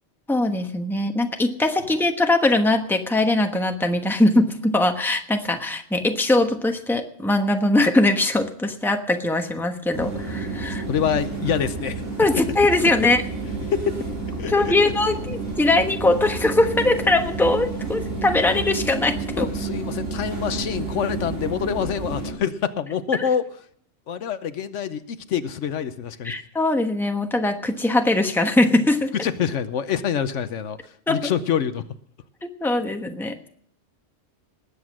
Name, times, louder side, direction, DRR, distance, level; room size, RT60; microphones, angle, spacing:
voice 1, 0.3-10.8 12.2-13.2 14.5-19.5 26.2-29.1 31.1-31.3 32.4-33.3, left 2 dB, ahead, 5 dB, 1.0 m, -21 dB
sound 1, 9.9-22.3, right 3 dB, 80° right, 4.3 m, -30 dB
voice 2, 10.9-12.0 13.7-14.0 14.4-14.7 19.4-23.5 24.1-26.4 29.2-30.8 31.1-31.9, left 8 dB, 75° left, 12 dB, 1.1 m, -26 dB
20.0 x 8.2 x 6.2 m, 0.63 s
omnidirectional pair, 1.3 m